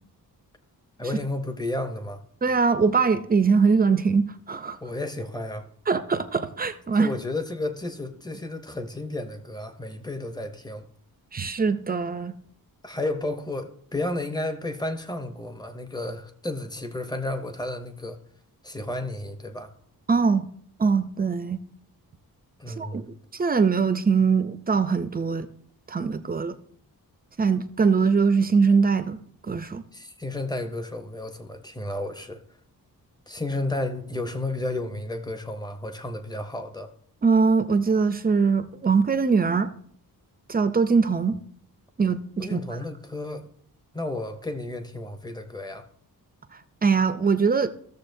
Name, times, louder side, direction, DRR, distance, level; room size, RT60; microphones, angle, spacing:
voice 1, 1.0-2.2 4.8-5.7 6.9-10.8 12.8-18.2 18.6-19.7 22.6-23.1 29.9-32.4 33.3-36.9 42.4-43.5 43.9-45.8, left 2 dB, 10° left, 0.6 m, -32 dB
voice 2, 2.4-4.8 5.9-7.1 11.3-12.4 20.1-20.5 20.8-21.6 22.8-23.0 23.3-25.5 25.9-26.6 27.4-29.2 29.5-29.8 37.2-39.7 40.5-41.4 42.0-42.6 46.8-47.7, right 5 dB, 25° right, 0.4 m, -22 dB
14.0 x 6.9 x 2.6 m
wide cardioid pair, 165°, 37 cm